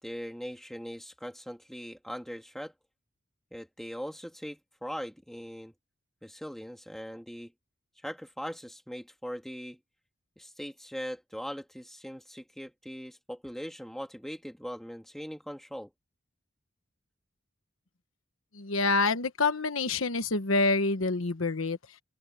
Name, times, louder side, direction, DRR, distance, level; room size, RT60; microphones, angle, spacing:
voice 1, 0.0-2.7 3.5-5.7 6.2-7.5 8.0-9.8 10.4-15.9, equal, ahead, 2.2 m, -40 dB
voice 2, 18.5-22.0, left 3 dB, 90° left, 1.2 m, -27 dB
open air
head